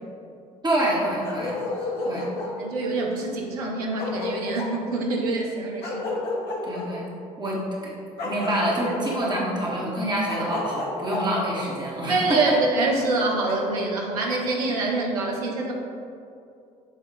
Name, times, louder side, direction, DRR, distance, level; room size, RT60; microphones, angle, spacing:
voice 1, 0.6-1.6 2.0-2.3 6.6-7.1 7.4-12.6, right 1 dB, 20° right, -5 dB, 1.5 m, -26 dB
Bark, 1.2-2.6 3.6-3.7 4.0-4.7 5.8-6.9 8.2-9.2 10.3-11.2 12.3-12.4 13.4-13.6, left 2 dB, 55° left, 1.0 m, -31 dB
voice 2, 2.0-6.2 12.1-15.7, right 3 dB, 75° right, -1 dB, 0.7 m, -26 dB
7.7 x 2.9 x 4.6 m, 2.5 s
figure-of-eight pair, 50°, 20 cm